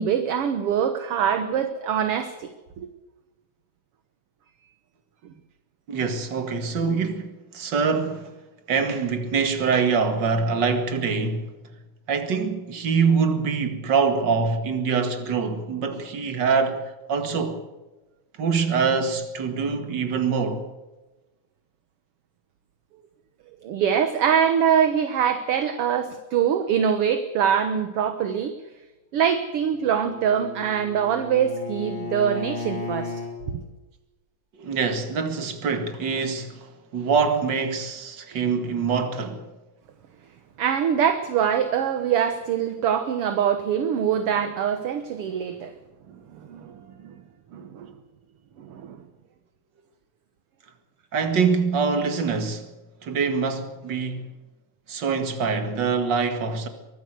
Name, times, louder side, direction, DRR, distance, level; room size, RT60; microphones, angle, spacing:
voice 1, 0.0-2.9 23.6-28.5 29.1-33.2 33.5-33.6 40.6-45.7 46.3-47.1 47.5-47.9 48.6-49.0, right 8 dB, 60° right, 1.8 m, -24 dB
voice 2, 5.9-8.3 8.7-11.5 12.1-17.6 18.4-20.7 34.6-39.4 51.1-52.7 53.0-54.3 54.9-56.7, right 5 dB, 40° right, 2.3 m, -24 dB
Bowed string instrument, 29.5-33.3, left 3 dB, 80° right, 8.7 m, -35 dB
23.5 x 14.0 x 8.1 m
omnidirectional pair, 3.4 m